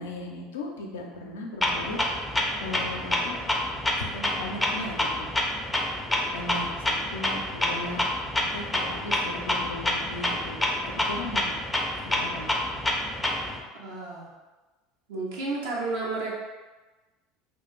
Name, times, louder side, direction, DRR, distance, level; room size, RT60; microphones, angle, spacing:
voice 1, 0.0-2.0 2.6-3.4 4.0-5.3 6.3-8.0 8.4-10.6 11.1-11.6 12.0-12.5, left 2 dB, 80° left, 0 dB, 0.4 m, -37 dB
Clock, 1.6-13.6, left 1 dB, 10° left, 0.4 m, -28 dB
voice 2, 13.7-14.3 15.1-16.4, right 3 dB, 75° right, -4 dB, 0.6 m, -31 dB
2.4 x 2.2 x 3.0 m, 1.2 s
hypercardioid pair, 75°, 0 cm